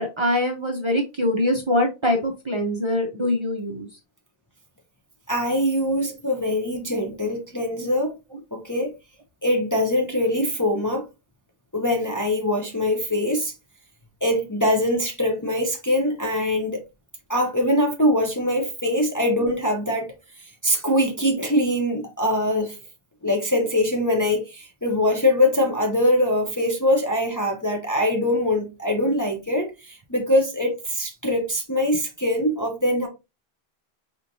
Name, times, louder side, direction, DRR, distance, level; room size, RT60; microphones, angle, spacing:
voice 1, 0.0-3.9, left 1 dB, 35° right, 0.6 m, -23 dB
voice 2, 5.3-8.1 8.5-8.9 9.4-11.1 11.7-13.5 14.2-16.8 17.3-20.1 20.4-22.8 23.2-33.1, left 1 dB, 20° left, 0.6 m, -23 dB
4.2 x 3.1 x 2.6 m
omnidirectional pair, 1.1 m